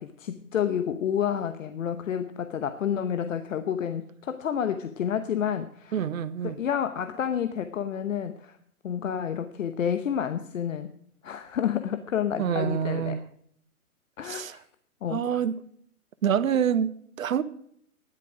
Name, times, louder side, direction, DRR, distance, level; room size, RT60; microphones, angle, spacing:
voice 1, 0.0-6.1 6.4-8.6 8.8-10.9 11.2-13.2 14.2-14.6 15.0-15.4, left 8 dB, 60° left, 1.0 m, -29 dB
voice 2, 5.9-6.6 12.4-13.2 14.2-14.6 15.1-15.6 16.2-17.4, right 8 dB, 60° right, 1.1 m, -26 dB
13.0 x 11.0 x 5.0 m
hypercardioid pair, 145°, 45 cm